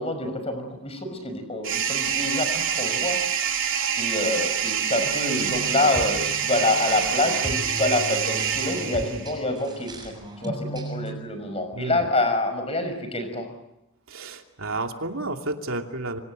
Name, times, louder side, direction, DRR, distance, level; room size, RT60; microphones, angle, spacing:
voice 1, 0.0-3.2 4.0-13.5, left 2 dB, 25° left, 7 dB, 5.9 m, -27 dB
sound 1, 1.6-9.4, right 8 dB, 60° right, 3.4 m, -26 dB
sound 2, 5.0-11.1, right 1 dB, 20° right, 7.4 m, -36 dB
voice 2, 11.7-12.0 14.1-16.2, right 2 dB, 75° right, 3 dB, 2.8 m, -31 dB
28.0 x 25.5 x 7.8 m, 0.88 s
head